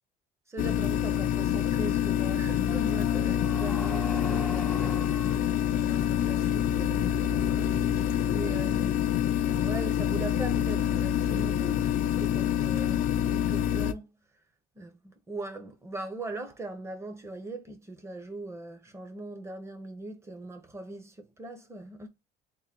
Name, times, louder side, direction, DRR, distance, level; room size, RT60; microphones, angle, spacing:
voice 1, 0.5-9.0 9.4-14.1 14.7-22.1, right 2 dB, 15° right, 0.9 m, -40 dB
sound 1, 0.6-13.9, left 10 dB, 55° left, 0.5 m, -27 dB
sound 2, 2.6-8.7, left 1 dB, 5° left, 0.5 m, -42 dB
3.8 x 2.1 x 4.4 m
cardioid pair, 125°, 17 cm